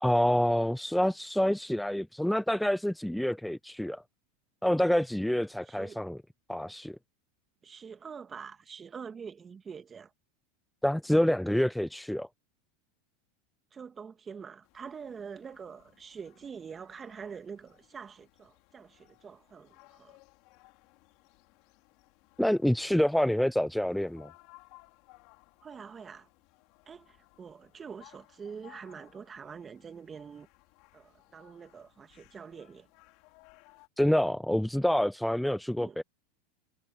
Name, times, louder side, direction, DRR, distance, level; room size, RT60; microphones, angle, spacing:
voice 1, 0.0-4.0 4.6-6.2 6.5-7.0 10.8-12.3 22.4-24.3 34.0-36.0, left 1 dB, ahead, 0.5 m, -27 dB
voice 2, 5.7-6.1 7.6-10.1 13.7-20.2 25.6-26.3 26.8-30.5 30.9-32.9 35.8-36.0, right 6 dB, 25° right, 2.1 m, -45 dB
sound 1, 14.6-33.9, left 25 dB, 55° left, 5.0 m, -61 dB
hypercardioid pair, 115°, 0 cm